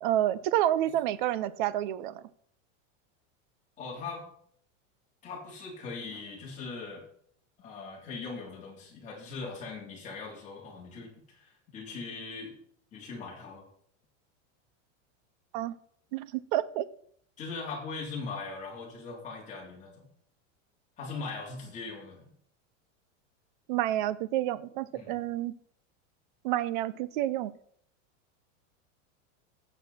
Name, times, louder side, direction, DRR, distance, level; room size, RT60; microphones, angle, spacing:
voice 1, 0.0-2.2 15.5-15.8 16.1-16.9 23.7-25.5 26.4-27.5, right 13 dB, 40° right, 17 dB, 0.6 m, -29 dB
voice 2, 3.8-4.3 5.2-7.0 7.6-12.5 12.9-13.6 17.4-20.1 21.0-22.2 24.9-25.2, left 4 dB, 20° left, -3 dB, 3.4 m, -40 dB
15.5 x 7.7 x 4.2 m, 0.65 s
supercardioid pair, 180°, 38 cm